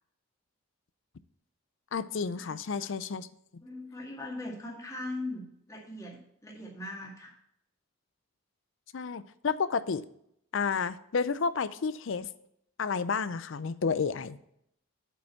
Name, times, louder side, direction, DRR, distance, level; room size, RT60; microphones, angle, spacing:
voice 1, 1.9-3.3 8.9-10.0 10.5-12.3 12.8-14.4, left 5 dB, 65° left, 15 dB, 0.5 m, -31 dB
voice 2, 3.6-7.4, left 2 dB, 15° left, -2 dB, 2.0 m, -40 dB
7.8 x 5.3 x 7.0 m, 0.74 s
head